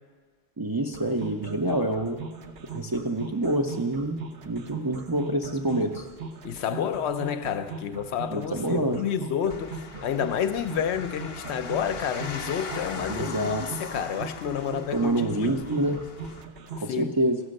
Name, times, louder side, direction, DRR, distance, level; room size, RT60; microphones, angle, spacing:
voice 1, 0.6-2.2 2.7-6.1 8.3-9.0 13.1-13.6 14.9-16.0 16.8-17.4, right 1 dB, 35° right, 0.4 m, -27 dB
sound 1, 0.9-16.9, right 5 dB, 65° right, 1.0 m, -39 dB
voice 2, 6.4-15.6 16.9-17.1, left 8 dB, 75° left, 0.9 m, -30 dB
sound 2, 9.5-16.4, left 4 dB, 35° left, 0.6 m, -40 dB
14.5 x 6.0 x 6.5 m
omnidirectional pair, 1.1 m